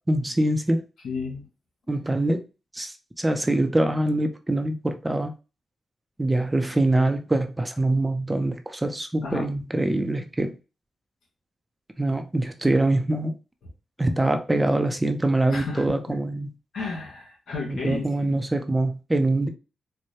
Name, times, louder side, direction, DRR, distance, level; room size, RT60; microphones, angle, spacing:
voice 1, 0.1-0.8 1.9-2.4 2.7-5.3 6.2-10.6 12.0-13.3 14.0-16.5 17.6-19.5, right 2 dB, 15° right, 0.6 m, -24 dB
voice 2, 1.0-1.5 9.2-9.5 15.5-16.2 16.7-18.3, left 3 dB, 75° left, 2.0 m, -33 dB
4.5 x 2.2 x 2.9 m
cardioid pair, 65°, 0 cm